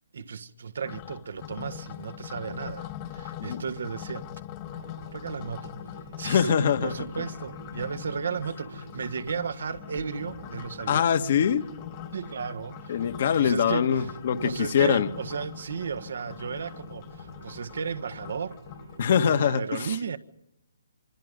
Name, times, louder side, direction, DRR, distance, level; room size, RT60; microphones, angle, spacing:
voice 1, 0.1-4.3 5.1-5.8 6.2-11.1 12.1-13.1 13.4-14.1 14.4-18.6 19.3-20.2, right 6 dB, 65° right, 1.6 m, -34 dB
sound 1, 0.8-19.0, left 11 dB, 25° left, 1.2 m, -42 dB
sound 2, 4.6-19.6, right 3 dB, 85° right, 6.7 m, -48 dB
voice 2, 6.2-6.9 10.9-11.7 12.9-15.1 19.0-20.0, left 8 dB, 50° left, 1.7 m, -23 dB
26.0 x 26.0 x 5.4 m
hypercardioid pair, 155°, 0 cm